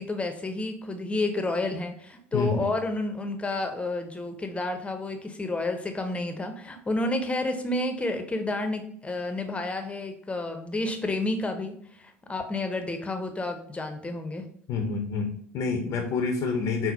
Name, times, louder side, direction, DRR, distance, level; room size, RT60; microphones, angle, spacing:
voice 1, 0.0-14.5, left 2 dB, 15° left, 6 dB, 0.7 m, -30 dB
voice 2, 2.3-2.7 14.7-16.9, left 4 dB, 55° left, 4 dB, 0.6 m, -28 dB
5.9 x 2.0 x 3.9 m, 0.64 s
hypercardioid pair, 70°, 7 cm